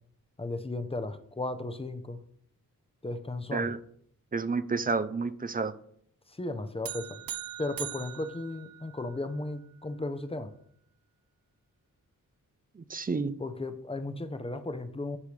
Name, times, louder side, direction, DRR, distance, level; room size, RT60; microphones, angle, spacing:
voice 1, 0.4-2.2 3.0-3.7 6.4-7.2 7.6-10.5 13.4-15.2, left 2 dB, 15° left, 10 dB, 0.6 m, -35 dB
voice 2, 4.3-5.7 12.8-13.3, right 4 dB, 25° right, 13 dB, 0.4 m, -30 dB
sound 1, 6.8-9.3, right 11 dB, 80° right, 0.6 m, -41 dB
9.8 x 5.5 x 3.3 m, 0.66 s
wide cardioid pair, 120°, 34 cm